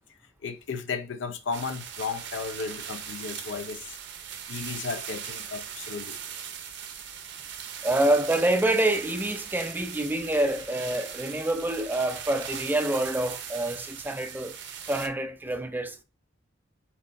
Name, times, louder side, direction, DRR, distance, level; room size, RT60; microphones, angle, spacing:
voice 1, 0.4-4.0 4.5-6.2, left 5 dB, 75° left, 0.6 m, -34 dB
sound 1, 1.5-15.1, right 8 dB, 65° right, 0.6 m, -39 dB
voice 2, 7.8-14.5 14.9-16.0, right 1 dB, 10° right, 0.4 m, -26 dB
4.3 x 4.1 x 2.5 m
head